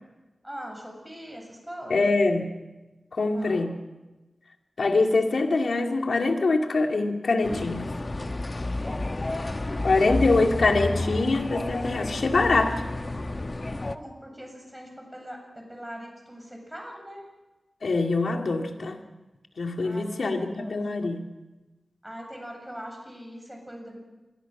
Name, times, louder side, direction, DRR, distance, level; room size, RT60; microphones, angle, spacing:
voice 1, 0.4-2.0 3.2-3.6 8.7-9.1 9.6-11.1 13.9-17.2 19.8-20.8 22.0-24.0, equal, 10° right, 2 dB, 7.4 m, -42 dB
voice 2, 1.9-2.5 3.1-3.7 4.8-7.9 9.8-12.8 17.8-19.0 19.6-21.3, left 3 dB, 80° left, 3 dB, 2.4 m, -24 dB
sound 1, 7.4-14.0, left 2 dB, 35° left, 1.1 m, -31 dB
27.0 x 21.0 x 6.1 m, 1.1 s
wide cardioid pair, 95°, 0 cm